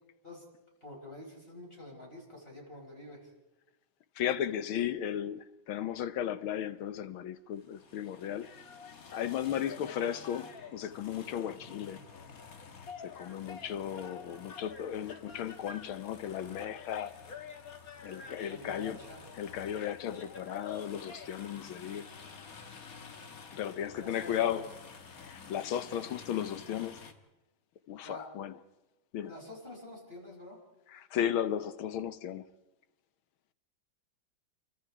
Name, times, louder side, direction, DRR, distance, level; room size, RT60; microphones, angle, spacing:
voice 1, 0.8-3.3 18.2-19.2 22.7-23.0 24.0-24.6 28.0-28.3 29.2-30.6, left 1 dB, 25° left, 5.2 m, -48 dB
voice 2, 4.2-8.5 9.1-12.0 13.0-17.1 18.0-19.0 19.4-22.1 23.5-24.7 25.2-27.0 27.9-28.6 29.1-29.3 30.9-32.4, left 10 dB, 85° left, 1.8 m, -35 dB
sound 1, 7.5-27.1, left 5 dB, 45° left, 1.8 m, -49 dB
28.0 x 24.0 x 4.9 m
omnidirectional pair, 2.2 m